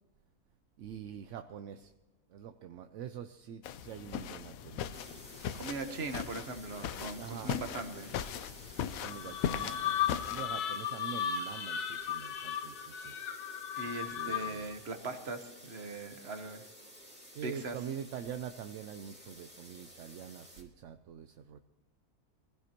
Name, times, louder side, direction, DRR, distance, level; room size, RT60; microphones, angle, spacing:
voice 1, 0.8-1.9 2.3-5.0 7.1-7.5 8.8-13.1 14.1-14.7 17.3-21.6, right 8 dB, 65° right, 8 dB, 0.9 m, -45 dB
sound 1, 3.6-10.5, left 9 dB, 70° left, 1.0 m, -39 dB
sound 2, 4.9-20.6, equal, 5° right, 2.8 m, -53 dB
voice 2, 5.5-8.1 13.8-16.6 17.4-17.8, right 3 dB, 45° right, 7 dB, 1.4 m, -40 dB
sound 3, 9.0-14.7, left 9 dB, 90° left, 1.3 m, -36 dB
23.5 x 15.5 x 3.0 m, 1.1 s
omnidirectional pair, 1.6 m